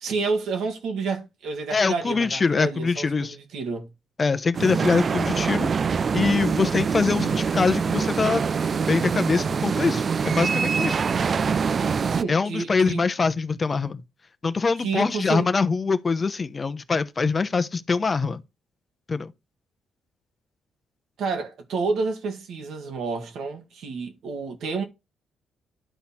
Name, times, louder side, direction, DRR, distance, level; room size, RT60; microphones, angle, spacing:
voice 1, 0.0-3.9 12.1-13.0 14.8-15.5 21.2-24.8, right 4 dB, 75° right, 1.9 m, -29 dB
voice 2, 1.7-3.4 4.2-5.7 6.1-8.4 8.7-11.0 12.3-14.0 14.4-18.4 19.1-19.3, left 4 dB, 30° left, 0.7 m, -24 dB
sound 1, 4.5-12.2, right 6 dB, 45° right, 0.3 m, -24 dB
11.0 x 4.2 x 4.2 m
cardioid pair, 90°, 0 cm